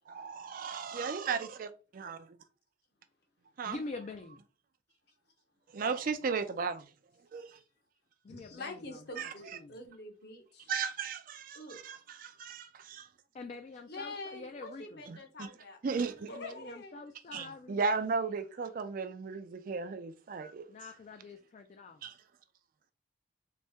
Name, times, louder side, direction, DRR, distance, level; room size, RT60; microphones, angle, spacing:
voice 1, 0.1-2.3 3.6-3.8 5.7-6.9 7.3-7.5 9.2-9.3 10.7-13.1 15.1-15.5 15.8-16.3 17.3-20.7 22.0-22.1, right 5 dB, 45° right, 0.4 m, -35 dB
voice 2, 3.7-4.4 8.2-9.7 13.3-15.0 16.3-17.8 20.7-22.0, left 3 dB, 40° left, 0.3 m, -46 dB
voice 3, 8.3-10.7 11.5-11.8 13.9-15.8 16.3-17.0, left 2 dB, 55° left, 0.9 m, -45 dB
4.0 x 2.1 x 3.5 m
head